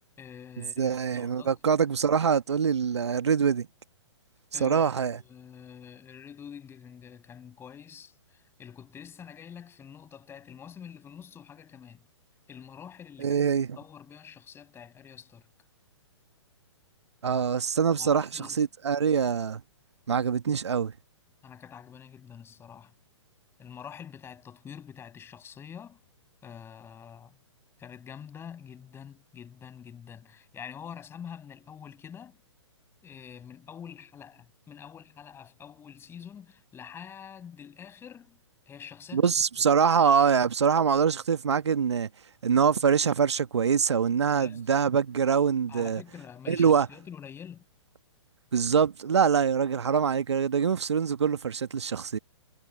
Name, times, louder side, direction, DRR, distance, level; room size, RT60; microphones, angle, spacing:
voice 1, 0.2-1.6 4.5-12.1 12.5-13.5 13.8-15.5 17.9-18.7 21.4-22.9 23.6-26.0 26.4-27.4 27.8-32.4 33.0-38.4 38.7-39.3 44.4-44.7 45.7-47.6, left 8 dB, 15° left, 6.6 m, -46 dB
voice 2, 0.8-3.7 4.6-5.2 13.2-13.7 17.2-18.3 18.6-19.6 20.1-20.9 39.1-42.1 42.4-46.0 46.5-46.9 48.5-52.2, right 7 dB, 65° right, 1.5 m, -24 dB
figure-of-eight pair, 120°, 15 cm